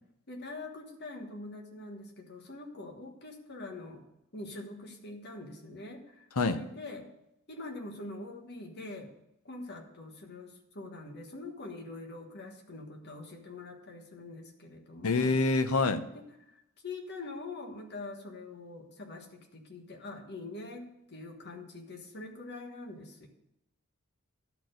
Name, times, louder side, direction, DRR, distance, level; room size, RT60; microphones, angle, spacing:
voice 1, 0.3-7.1 7.5-9.1 9.4-15.4 16.1-23.3, left 2 dB, 50° left, 2 dB, 1.5 m, -44 dB
voice 2, 15.0-16.0, left 3 dB, 80° left, 10 dB, 0.8 m, -26 dB
11.5 x 4.4 x 7.8 m, 0.83 s
head